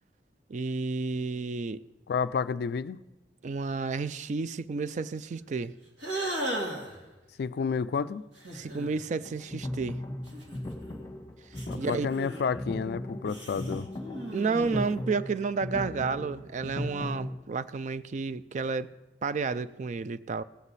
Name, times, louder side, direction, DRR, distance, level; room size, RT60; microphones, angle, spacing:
voice 1, 0.5-1.8 3.4-5.7 8.5-10.0 11.8-12.1 14.3-18.9 19.2-20.4, right 4 dB, 40° right, 15 dB, 0.3 m, -31 dB
voice 2, 2.1-3.0 7.4-8.2 11.7-13.9, left 6 dB, 60° left, 14 dB, 0.3 m, -30 dB
sound 1, 6.0-7.0 8.4-9.0 10.3-11.0 11.5-12.5 13.3-15.0, right 1 dB, 85° right, 2.3 m, -36 dB
sound 2, 9.2-17.4, left 1 dB, 20° left, 1.1 m, -38 dB
17.5 x 8.0 x 4.1 m, 1.1 s
head